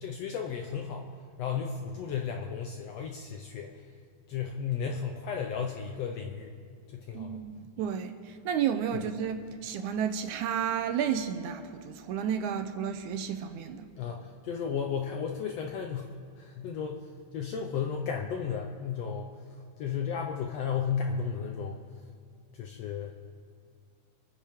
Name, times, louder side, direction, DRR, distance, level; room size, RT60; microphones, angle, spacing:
voice 1, 0.0-1.0 1.4-3.8 4.3-6.5 6.9-7.4 14.0-19.3 19.8-21.8 22.5-23.1, left 7 dB, 75° left, 1.5 m, -34 dB
voice 2, 7.1-7.5 7.8-13.9, right 8 dB, 80° right, 2.0 m, -32 dB
26.5 x 10.0 x 3.6 m
omnidirectional pair, 3.7 m